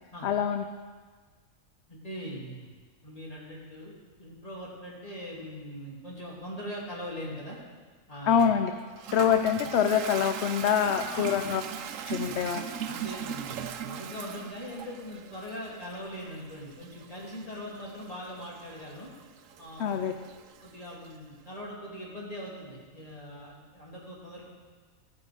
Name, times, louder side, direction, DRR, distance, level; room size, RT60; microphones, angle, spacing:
voice 1, 0.2-0.6 8.3-8.7 9.1-11.6 12.0-12.7 19.8-20.1, left 8 dB, 65° left, 7 dB, 0.8 m, -25 dB
voice 2, 1.9-2.7 3.0-7.6 8.1-8.5 11.1-11.4 12.2-12.4 12.9-19.1 19.6-20.1 20.6-24.4, equal, 25° left, -4 dB, 2.7 m, -41 dB
Toilet flush, 8.4-21.2, right 8 dB, 75° right, 1.0 m, -40 dB
14.5 x 8.8 x 4.9 m, 1.4 s
omnidirectional pair, 1.4 m